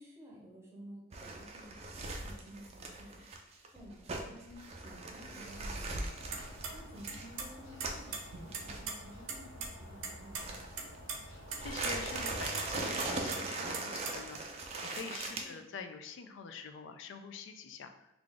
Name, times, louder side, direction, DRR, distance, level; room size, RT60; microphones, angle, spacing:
voice 1, 0.0-3.2 3.7-6.2 6.7-10.5 15.3-15.6, equal, 15° right, -4 dB, 0.8 m, -53 dB
sound 1, 1.1-8.1 8.5-8.8 10.3-11.0 11.5-15.4, right 2 dB, 30° right, 0.4 m, -40 dB
sound 2, 5.2-12.4, equal, 85° left, 0.8 m, -51 dB
sound 3, 6.3-6.7 7.1-7.5 7.8-8.9 9.3-9.4 9.6-9.7 10.0-10.4 10.8-11.2 11.5-11.9 12.3-12.6 13.0-14.4, right 5 dB, 85° right, 0.6 m, -39 dB
voice 2, 11.3-18.1, left 5 dB, 60° left, 8 dB, 0.3 m, -46 dB
3.4 x 2.4 x 3.7 m, 0.92 s
head